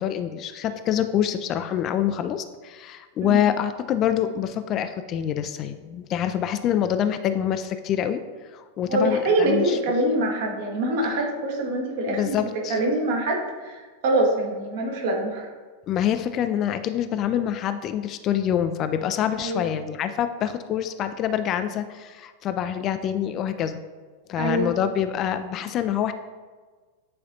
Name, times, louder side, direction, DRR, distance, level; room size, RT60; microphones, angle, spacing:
voice 1, 0.0-8.2 8.5-9.8 12.1-12.8 15.9-23.8 24.3-26.1, left 10 dB, 35° left, 10 dB, 0.3 m, -26 dB
voice 2, 8.9-15.5 19.4-19.7 24.4-24.7, right 1 dB, 55° right, 0 dB, 1.3 m, -24 dB
8.6 x 4.1 x 2.7 m, 1.4 s
figure-of-eight pair, 90°, 0 cm